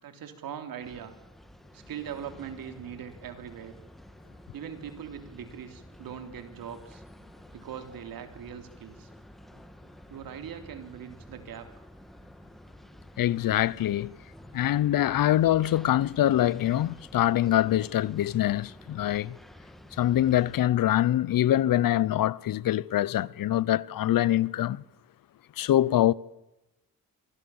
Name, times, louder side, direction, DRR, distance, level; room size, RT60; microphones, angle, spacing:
voice 1, 0.0-1.1 1.7-3.7 4.5-7.0 7.5-9.1 10.1-11.7, right 8 dB, 80° right, 3.2 m, -41 dB
sound 1, 0.8-20.6, equal, ahead, 1.8 m, -50 dB
voice 2, 13.2-14.1 14.5-19.4 19.9-24.8 25.6-26.1, left 13 dB, 70° left, 0.8 m, -24 dB
26.5 x 22.5 x 7.2 m
cardioid pair, 65°, 34 cm